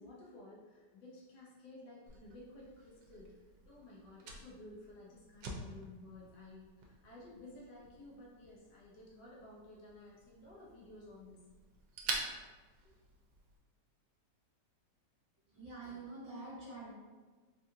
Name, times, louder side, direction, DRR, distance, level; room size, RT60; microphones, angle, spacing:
voice 1, 0.0-11.5, left 2 dB, 75° left, -5 dB, 1.3 m, -54 dB
Fire, 2.1-13.6, right 3 dB, 80° right, 1.2 m, -48 dB
voice 2, 15.5-16.9, right 2 dB, 40° right, -11 dB, 1.5 m, -46 dB
3.7 x 2.3 x 2.7 m, 1.4 s
omnidirectional pair, 1.9 m